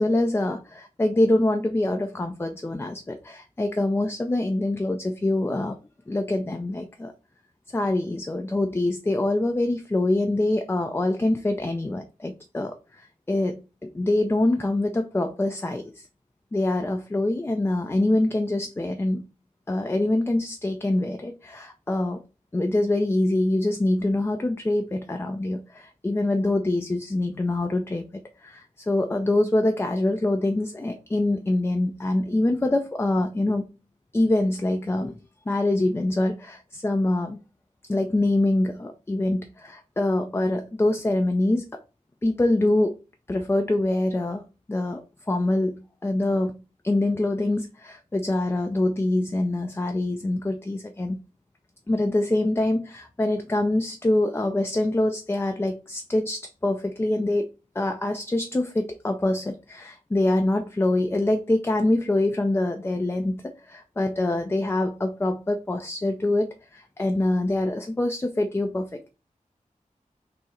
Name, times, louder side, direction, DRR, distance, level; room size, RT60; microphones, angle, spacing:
voice 1, 0.0-5.8 6.1-7.1 7.7-16.1 16.5-19.2 19.7-22.2 22.5-28.1 28.4-33.7 34.1-35.2 35.5-37.4 37.9-41.7 42.2-42.9 43.3-45.0 45.3-51.2 51.9-57.5 57.8-69.1, left 2 dB, 15° left, 0.3 m, -25 dB
3.5 x 2.0 x 4.2 m
wide cardioid pair, 70°, 14 cm